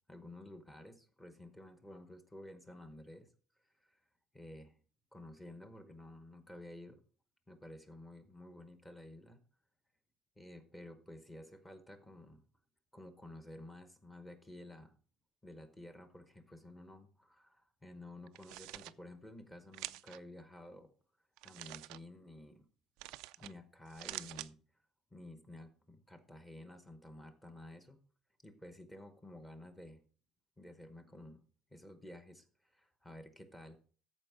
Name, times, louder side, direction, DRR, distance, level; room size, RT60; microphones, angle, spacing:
voice 1, 0.1-3.3 4.3-4.7 5.1-7.0 7.5-9.4 10.4-12.4 12.9-14.9 15.4-20.9 21.4-22.7 23.4-24.6 25.1-28.0 28.4-30.0 30.6-31.4 31.7-33.8, left 1 dB, 10° left, 8 dB, 0.9 m, -52 dB
sound 1, 18.3-18.9 19.7-20.2 21.4-22.0 23.0-23.5 23.9-24.5, right 18 dB, 80° right, 0.4 m, -46 dB
13.5 x 4.8 x 4.8 m, 0.41 s
cardioid pair, 175°, 0 cm